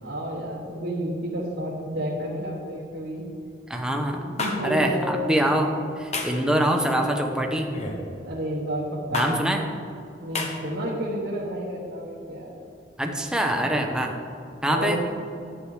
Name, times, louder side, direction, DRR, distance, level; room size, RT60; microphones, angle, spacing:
voice 1, 0.0-3.2 4.1-5.4 8.2-9.5 10.2-12.5 13.5-13.6 14.7-15.0, equal, 80° right, -6 dB, 1.4 m, -31 dB
voice 2, 3.7-4.2 4.6-5.7 6.2-7.7 9.1-9.6 13.0-14.1 14.6-15.0, right 1 dB, 5° right, 2 dB, 0.8 m, -24 dB
sound 1, 4.4-4.5 6.1-6.4 7.7-8.0 9.1-9.3 10.3-10.5, left 3 dB, 40° left, 1.1 m, -28 dB
11.0 x 8.4 x 3.3 m, 2.5 s
head